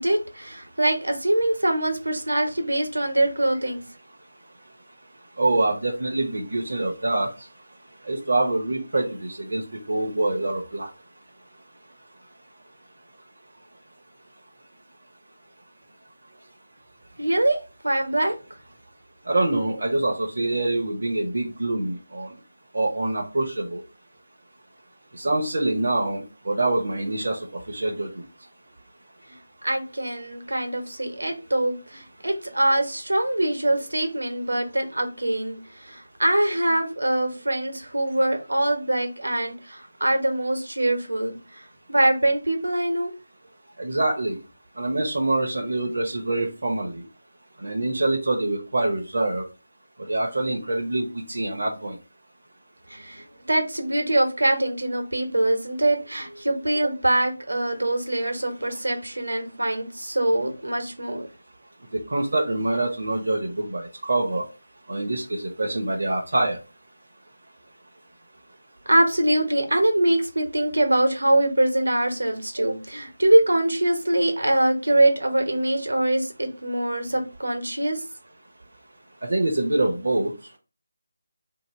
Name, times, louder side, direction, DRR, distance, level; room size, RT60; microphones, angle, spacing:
voice 1, 0.0-3.8 17.2-17.6 17.8-18.3 29.6-43.1 52.9-61.3 68.9-78.0, right 1 dB, 85° right, 4 dB, 1.1 m, -23 dB
voice 2, 5.4-7.3 8.0-10.9 19.3-22.3 22.7-23.8 25.1-28.2 43.8-44.4 44.8-47.0 47.6-49.4 50.1-51.9 61.9-64.4 64.9-66.6 79.2-80.3, right 2 dB, 65° right, -1 dB, 0.8 m, -25 dB
2.9 x 2.8 x 4.2 m, 0.31 s
figure-of-eight pair, 160°, 0 cm